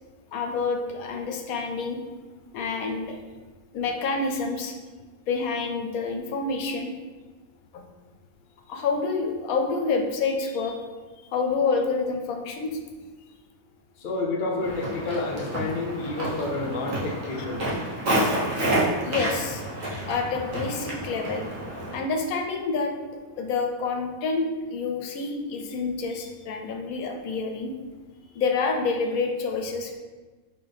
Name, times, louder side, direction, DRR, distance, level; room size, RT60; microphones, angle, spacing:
voice 1, 0.3-2.0 2.5-3.2 3.7-4.7 5.3-6.9 7.7-7.8 8.7-10.8 11.3-12.8 17.3-17.8 19.0-19.6 20.1-21.4 21.9-22.9 23.4-27.7 28.3-29.9, left 4 dB, 75° left, 3 dB, 1.0 m, -28 dB
voice 2, 14.0-17.6, left 2 dB, 50° left, 0 dB, 0.6 m, -29 dB
Walk footsteps, 14.6-22.0, right 1 dB, 65° right, 1.6 m, -29 dB
4.3 x 3.6 x 3.4 m, 1.3 s
omnidirectional pair, 1.5 m